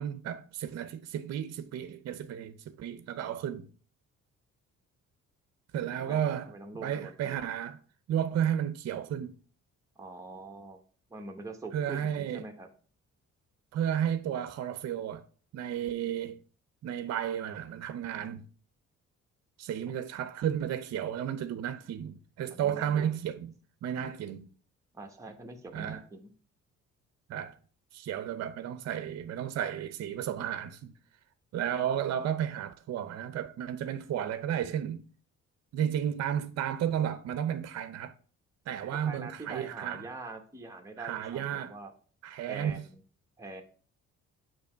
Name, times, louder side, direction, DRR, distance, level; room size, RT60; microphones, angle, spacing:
voice 1, 0.0-3.7 5.7-6.5 6.8-7.8 8.1-9.4 11.7-12.4 13.7-15.2 15.5-16.4 16.8-18.5 19.6-23.5 23.8-24.5 25.7-26.0 27.3-27.6 27.9-30.9 31.5-35.0 35.7-38.1 38.7-40.1 41.0-41.7 42.2-42.8, right 9 dB, 60° right, 0.5 m, -33 dB
voice 2, 6.5-7.4 10.0-10.8 11.1-12.7 22.5-23.1 24.9-26.3 39.0-41.9 42.4-43.0 43.4-43.6, right 3 dB, 10° right, 1.0 m, -44 dB
6.9 x 2.9 x 5.6 m
cardioid pair, 90°, 30 cm